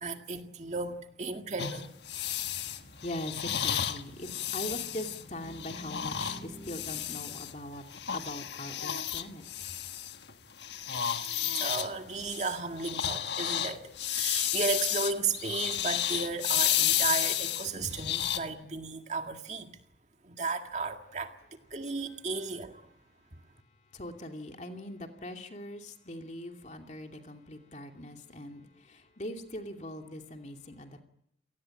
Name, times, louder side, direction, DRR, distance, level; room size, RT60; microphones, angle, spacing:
voice 1, 0.0-1.9 11.6-19.7 20.3-21.3 21.7-22.7, right 4 dB, 40° right, 2.0 m, -34 dB
sound 1, 1.6-7.5 7.9-10.3 10.6-18.4, left 10 dB, 80° left, 1.4 m, -32 dB
voice 2, 2.3-2.7 3.0-7.8 8.1-9.4 24.0-28.6 29.2-31.0, left 1 dB, 40° left, 2.6 m, -41 dB
28.5 x 18.5 x 8.9 m
head